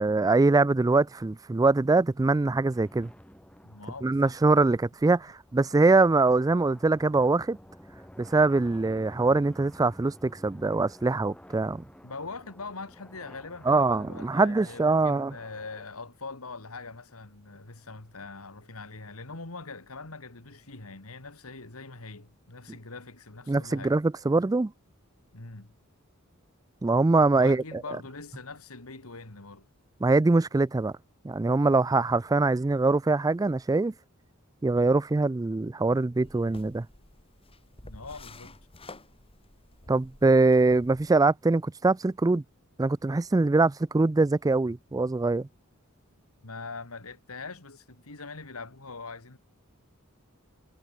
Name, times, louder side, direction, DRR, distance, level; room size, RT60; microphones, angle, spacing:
voice 1, 0.0-3.1 4.0-7.6 8.2-11.8 13.7-15.3 23.5-24.7 26.8-27.6 30.0-30.9 31.2-33.9 34.6-36.9 39.9-42.4 42.8-45.5, right 3 dB, 15° right, 0.4 m, -23 dB
sound 1, 2.7-15.9, equal, 5° left, 6.4 m, -52 dB
voice 2, 3.6-4.4 5.7-5.9 12.0-24.0 25.3-25.7 27.4-29.7 37.8-38.6 46.4-49.4, left 3 dB, 85° left, 2.4 m, -42 dB
sound 2, 36.2-41.3, left 2 dB, 25° left, 3.1 m, -50 dB
head